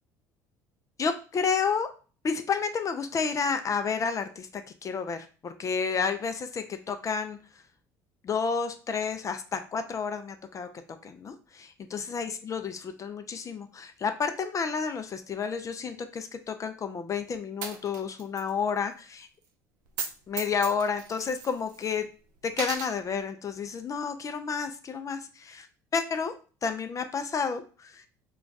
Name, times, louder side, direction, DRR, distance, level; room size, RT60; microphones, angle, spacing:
voice 1, 1.0-1.9 2.2-7.4 8.2-10.7 11.0-19.3 20.3-22.1 22.4-25.7 25.9-26.3 26.6-28.0, left 5 dB, 35° left, 8 dB, 0.4 m, -31 dB
Coin (dropping), 17.6-18.5 18.8-18.9 19.9-20.1 20.4-22.0 22.5-22.9, right 6 dB, 85° right, 0.5 m, -36 dB
2.3 x 2.2 x 3.8 m, 0.36 s
hypercardioid pair, 70°, 9 cm